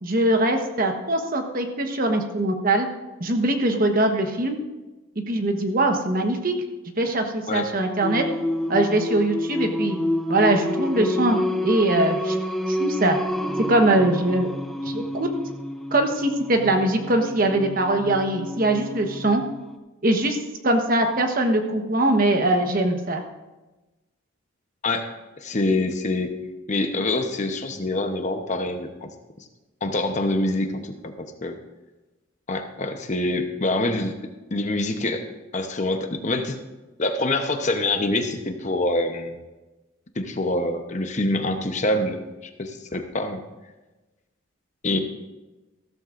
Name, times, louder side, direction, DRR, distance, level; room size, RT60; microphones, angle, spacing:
voice 1, 0.0-2.9 3.2-4.6 5.3-6.5 7.0-8.2 8.7-10.0 10.3-12.4 12.7-13.2 13.7-14.5 14.8-15.3 15.9-19.4 20.0-20.4 20.6-23.2, right 1 dB, 45° right, 4 dB, 1.2 m, -22 dB
Singing, 8.0-19.8, left 1 dB, ahead, 0.6 m, -28 dB
voice 2, 25.4-26.3 26.7-29.1 29.8-31.6 32.5-34.1 34.5-35.2 35.5-36.6 37.0-39.4 40.2-42.2 42.6-43.4 44.8-45.0, left 2 dB, 35° left, 6 dB, 0.8 m, -25 dB
15.0 x 13.5 x 2.5 m, 1.1 s
head